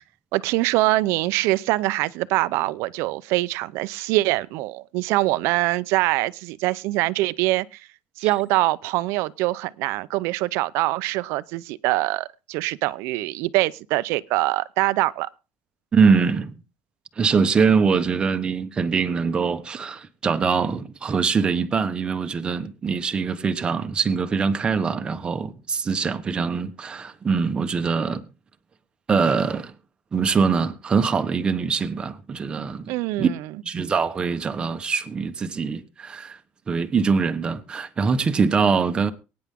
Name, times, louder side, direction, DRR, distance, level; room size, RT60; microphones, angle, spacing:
voice 1, 0.3-7.8 8.2-15.3 32.9-33.5, right 19 dB, 70° right, 0.7 m, -24 dB
voice 2, 15.9-16.5 17.2-28.2 29.1-29.7 30.1-32.9 33.2-33.3 33.6-36.4 36.7-39.1, right 5 dB, 20° right, 1.1 m, -23 dB
23.5 x 9.7 x 3.7 m
cardioid pair, 170°, 5 cm